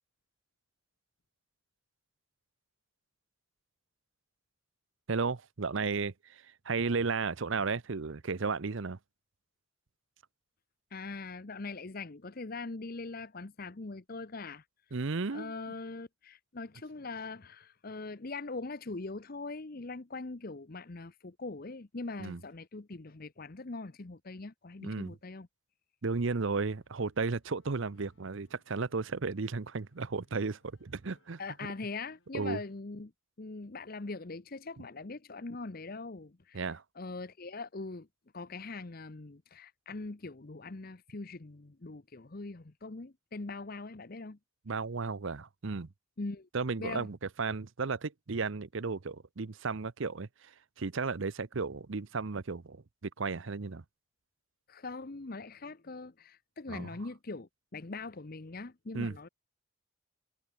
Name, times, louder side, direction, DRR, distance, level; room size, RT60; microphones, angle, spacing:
voice 1, 5.1-9.0 14.9-15.5 22.2-22.4 24.8-25.1 26.0-31.4 32.3-32.6 36.5-36.8 44.7-45.9 46.5-52.8 53.2-53.8 56.7-56.9 58.9-59.2, right 4 dB, 60° right, 0.7 m, -34 dB
voice 2, 10.9-14.6 15.3-25.5 31.4-33.1 33.4-36.7 37.0-38.1 38.3-44.4 46.2-46.5 46.8-47.1 54.7-59.3, left 3 dB, 45° left, 0.8 m, -42 dB
sound 1, 26.0-32.8, left 1 dB, 60° left, 7.3 m, -71 dB
head